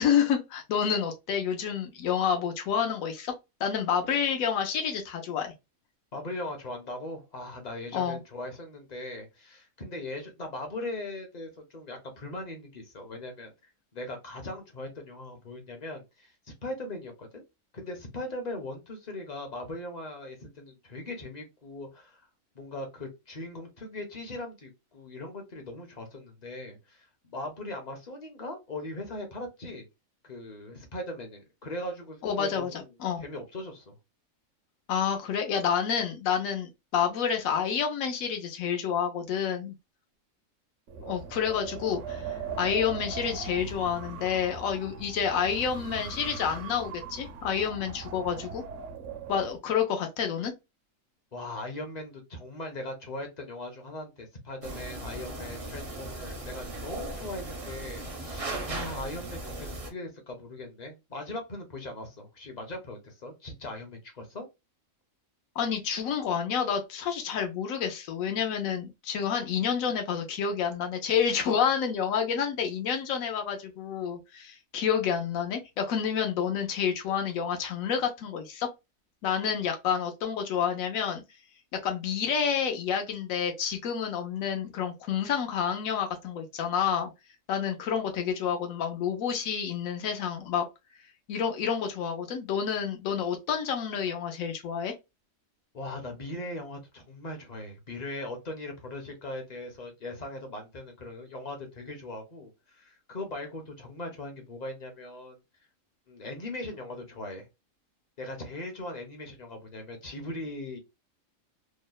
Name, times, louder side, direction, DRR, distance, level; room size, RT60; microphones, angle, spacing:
voice 1, 0.0-3.3 3.6-5.5 7.9-8.2 32.2-33.2 34.9-39.7 41.0-42.3 42.6-48.6 49.3-50.5 65.6-78.7 79.2-81.2 81.8-87.1 87.5-90.7 91.3-94.9, left 7 dB, 85° left, 1.0 m, -29 dB
voice 2, 6.1-13.5 13.9-16.3 16.6-17.4 17.7-22.3 22.5-29.8 30.2-32.9 33.2-33.9 51.3-64.4 95.7-105.4 106.1-107.5 108.2-110.8, left 1 dB, 45° left, 0.6 m, -39 dB
Wind, 40.9-49.6, right 5 dB, 70° right, 0.9 m, -40 dB
sound 1, 54.6-59.9, right 2 dB, 40° right, 0.5 m, -37 dB
2.9 x 2.0 x 2.2 m
omnidirectional pair, 1.4 m